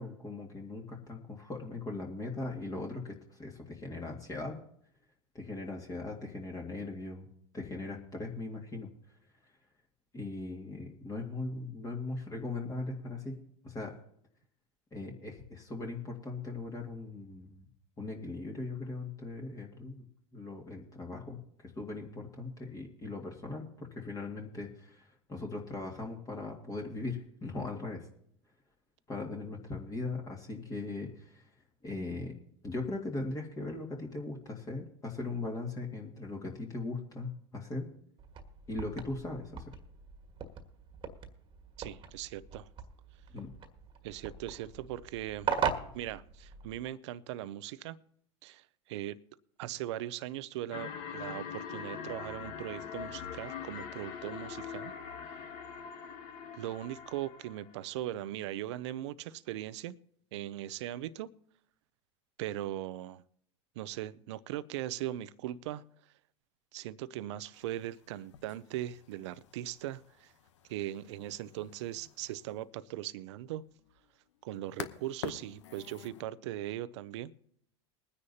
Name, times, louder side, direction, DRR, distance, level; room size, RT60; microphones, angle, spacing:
voice 1, 0.0-4.6 5.3-7.3 7.5-8.9 10.1-14.0 14.9-17.7 18.0-20.0 20.3-28.1 29.1-31.5 31.8-32.4 32.6-37.9 38.7-39.7 43.3-43.5, left 3 dB, 20° left, 2.1 m, -39 dB
sound 1, 38.2-46.9, right 6 dB, 30° right, 1.6 m, -39 dB
voice 2, 41.8-42.7 44.0-45.5 45.9-48.0 48.4-49.2 49.6-54.9 56.5-60.0 60.3-61.3 62.4-63.2 63.8-65.8 66.7-70.3 70.7-73.6 74.4-77.3, right 13 dB, 70° right, 0.6 m, -39 dB
sound 2, 50.7-57.9, left 7 dB, 55° left, 1.3 m, -43 dB
sound 3, 67.5-76.2, left 10 dB, 75° left, 0.8 m, -49 dB
21.5 x 9.9 x 2.8 m
hypercardioid pair, 95°, 16 cm